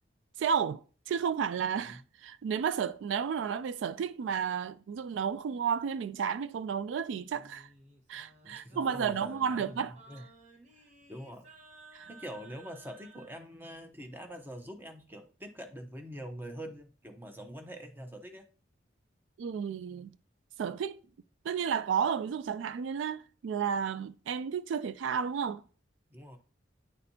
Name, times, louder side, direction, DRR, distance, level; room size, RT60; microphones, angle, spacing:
voice 1, 0.4-7.7 8.1-9.9 11.9-12.0 19.4-20.1 20.6-21.0 21.4-25.6, right 7 dB, 80° right, 0.3 m, -32 dB
Singing, 7.3-13.4, right 3 dB, 40° right, 1.0 m, -56 dB
voice 2, 8.4-9.8 10.1-10.3 10.7-11.5 12.1-18.5 26.1-26.4, equal, 10° right, 0.7 m, -45 dB
9.6 x 4.2 x 2.7 m
head